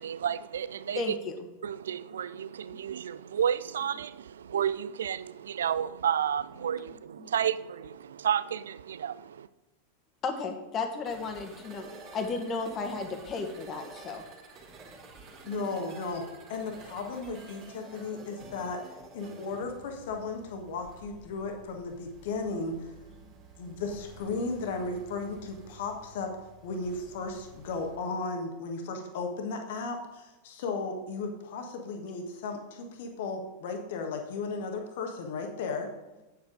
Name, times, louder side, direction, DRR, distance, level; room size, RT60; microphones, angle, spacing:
voice 1, 0.0-1.2 1.6-9.5, right 9 dB, 65° right, 0.4 m, -31 dB
voice 2, 0.9-1.4 2.7-2.8 7.2-7.3 10.2-11.8 12.1-14.2 23.2-23.3, left 4 dB, 30° left, 1.5 m, -34 dB
sound 1, 11.0-28.0, right 3 dB, 35° right, 2.2 m, -50 dB
voice 3, 15.4-18.8 19.1-22.9 23.6-26.3 26.6-35.9, left 3 dB, 55° left, 1.4 m, -35 dB
9.0 x 7.8 x 5.1 m
figure-of-eight pair, 90°, 0 cm